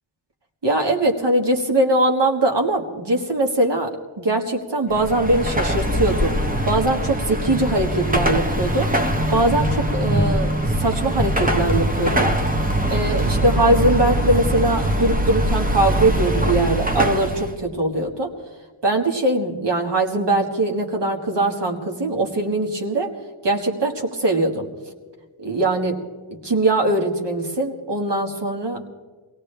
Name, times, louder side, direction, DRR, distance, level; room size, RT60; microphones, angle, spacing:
voice 1, 0.6-6.3 6.7-8.9 9.3-10.5 10.8-12.3 12.9-18.3 18.8-23.1 23.4-24.7 25.4-26.0 26.4-28.9, right 2 dB, 55° right, 2 dB, 1.9 m, -21 dB
Car passing by / Traffic noise roadway noise / Engine, 4.9-17.5, right 1 dB, 15° right, 1.0 m, -22 dB
24.0 x 17.5 x 3.4 m, 1.4 s
wide cardioid pair, 110°, 50 cm